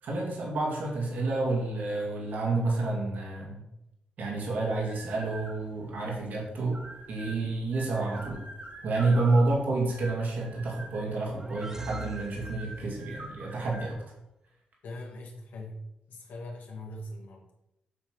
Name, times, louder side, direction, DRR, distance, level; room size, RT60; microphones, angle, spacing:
voice 1, 0.0-3.6 4.2-6.8 7.1-8.4 8.8-14.0, right 2 dB, 75° right, -2 dB, 2.2 m, -29 dB
sound 1, 4.6-13.9, right 2 dB, 50° right, 1.7 m, -46 dB
sound 2, 10.9-13.1, right 1 dB, 15° right, 0.6 m, -45 dB
voice 2, 14.8-17.7, left 1 dB, 80° left, -1 dB, 1.8 m, -42 dB
8.4 x 3.5 x 6.1 m, 0.87 s
cardioid pair, 105°, 3 cm